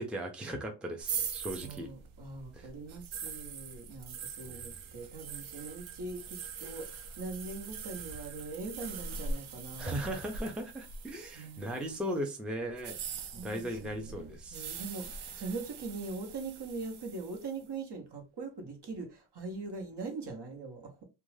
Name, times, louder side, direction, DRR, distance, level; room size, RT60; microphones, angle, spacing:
voice 1, 0.0-1.9 2.5-2.7 4.4-4.6 9.8-13.0 13.3-14.8, right 1 dB, ahead, 0.4 m, -37 dB
sound 1, 1.0-12.0 12.7-17.6, right 5 dB, 85° right, 0.6 m, -42 dB
voice 2, 1.5-10.0 11.3-12.1 13.1-21.0, right 3 dB, 55° right, 0.9 m, -42 dB
2.4 x 2.2 x 3.2 m
wide cardioid pair, 90°, 47 cm